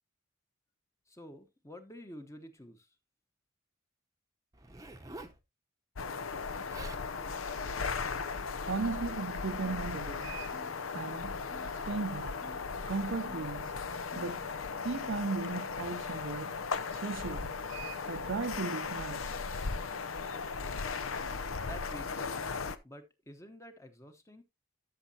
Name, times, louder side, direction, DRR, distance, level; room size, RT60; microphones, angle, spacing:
voice 1, 1.1-2.9 21.6-24.4, equal, 15° left, 1.0 m, -50 dB
Zipper (clothing), 4.5-5.4 6.4-6.5 6.7-7.1 7.8-8.0, right 2 dB, 15° right, 0.8 m, -48 dB
sound 1, 6.0-22.8, left 5 dB, 75° left, 0.7 m, -37 dB
voice 2, 8.6-10.5 10.9-11.4 11.9-12.4 12.9-13.7 14.2-14.5 14.8-16.6 16.9-19.3, right 4 dB, 60° right, 0.5 m, -36 dB
sound 2, 10.5-10.7 11.5-11.8 12.4-12.7 13.2-13.5 14.1-14.4 14.9-15.2, right 1 dB, 50° left, 1.2 m, -52 dB
12.5 x 6.5 x 2.8 m
head